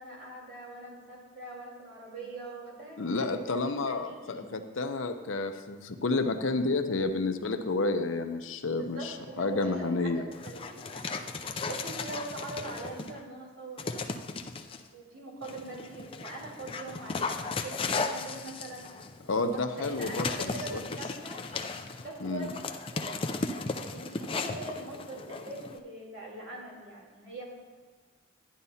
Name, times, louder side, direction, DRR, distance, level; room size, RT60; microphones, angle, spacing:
voice 1, 0.0-4.5 8.8-14.1 14.9-18.9 19.2-21.4 22.0-23.1 23.8-27.4, right 2 dB, 75° right, -4 dB, 3.4 m, -42 dB
voice 2, 3.0-10.2 19.3-20.8 22.2-22.5, left 3 dB, 75° left, 7 dB, 0.7 m, -30 dB
Dog, 10.3-13.2 13.8-14.8 15.4-25.8, left 4 dB, 25° left, 0.4 m, -36 dB
12.5 x 10.0 x 2.8 m, 1.5 s
head